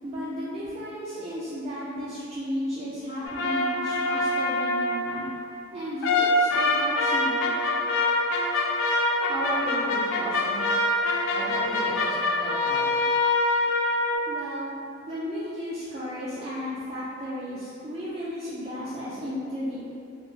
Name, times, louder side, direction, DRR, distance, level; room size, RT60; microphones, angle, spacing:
voice 1, 0.0-5.3 5.7-7.4 14.3-14.7 15.1-19.8, equal, 30° right, -10 dB, 0.3 m, -34 dB
sound 1, 3.3-5.3 6.0-14.2, left 2 dB, 90° left, 0.3 m, -25 dB
voice 2, 9.3-10.7 11.3-12.8, right 1 dB, 55° right, -10 dB, 1.0 m, -34 dB
2.5 x 2.0 x 3.0 m, 2.4 s
head